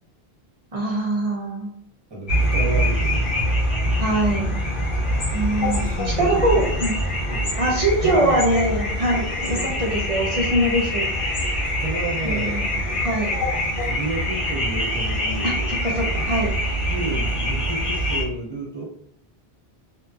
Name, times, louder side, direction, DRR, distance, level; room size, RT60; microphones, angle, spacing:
voice 1, 0.7-1.7 4.0-4.6 5.3-6.9 7.6-11.1 12.2-12.6 13.0-13.3 15.4-15.5 15.8-16.5, right 1 dB, 45° right, -1 dB, 0.5 m, -23 dB
voice 2, 2.1-3.3 5.6-6.9 7.2-7.6 8.0-8.5 9.4-9.9 11.6-13.1 13.8-15.8 16.9-18.8, right 2 dB, 25° right, -4 dB, 0.9 m, -31 dB
sound 1, 2.3-18.2, equal, 60° left, 0.9 m, -24 dB
2.7 x 2.4 x 2.3 m, 0.69 s
omnidirectional pair, 1.0 m